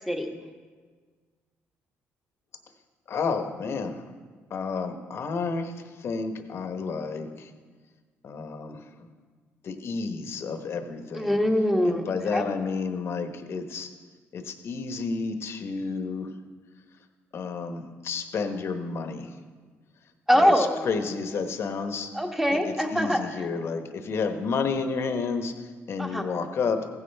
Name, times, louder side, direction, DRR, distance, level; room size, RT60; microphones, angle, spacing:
voice 1, 0.1-0.4 11.1-12.5 20.3-20.8 22.1-23.5 26.0-26.2, equal, 5° right, 3 dB, 1.3 m, -24 dB
voice 2, 3.1-4.0 4.5-5.7 6.0-7.5 8.2-9.1 9.6-11.3 11.8-13.9 14.3-16.3 17.3-19.3 20.3-22.1 22.5-25.5 25.9-26.9, left 5 dB, 55° left, 7 dB, 1.1 m, -31 dB
15.5 x 9.7 x 3.4 m, 1.5 s
cardioid pair, 80°, 5 cm